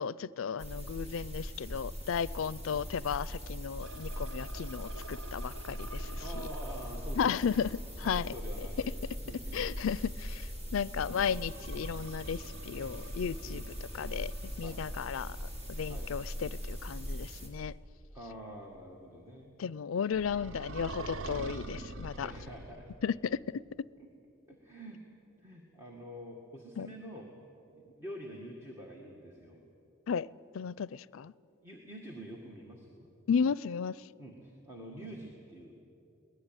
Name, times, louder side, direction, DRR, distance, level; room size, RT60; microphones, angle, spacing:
voice 1, 0.0-6.5 7.2-8.3 9.5-13.6 13.9-14.3 14.6-15.4 15.7-17.7 19.6-22.3 23.0-23.6 26.8-26.9 30.1-30.3 30.5-31.3 33.3-34.0, left 6 dB, 85° left, 22 dB, 0.4 m, -34 dB
sound 1, 0.6-17.5, equal, 30° right, 3.4 m, -40 dB
sound 2, 3.8-7.9 11.0-17.3 20.1-23.0, right 2 dB, 80° right, 0.9 m, -46 dB
voice 2, 6.2-7.7 8.0-9.0 9.3-9.9 10.7-11.1 12.7-12.9 13.4-13.7 14.6-14.8 15.9-16.1 18.1-19.5 22.2-23.0 24.5-25.0 25.4-27.3 27.7-29.6 31.6-33.1 34.2-35.8, equal, 15° right, -2 dB, 1.9 m, -47 dB
23.0 x 18.0 x 9.0 m, 2.8 s
head